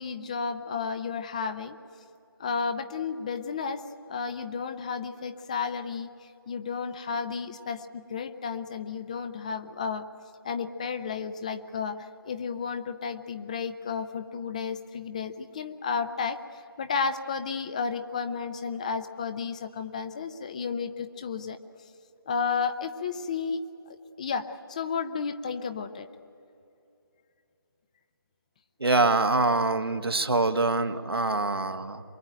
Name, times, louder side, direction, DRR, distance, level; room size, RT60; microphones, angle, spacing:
voice 1, 0.0-1.8 2.4-10.1 10.4-21.6 22.3-26.1, left 5 dB, 20° left, 10 dB, 0.6 m, -32 dB
voice 2, 28.8-32.0, right 3 dB, 80° right, 7 dB, 1.6 m, -24 dB
24.0 x 21.5 x 9.0 m, 2.7 s
figure-of-eight pair, 160°, 13 cm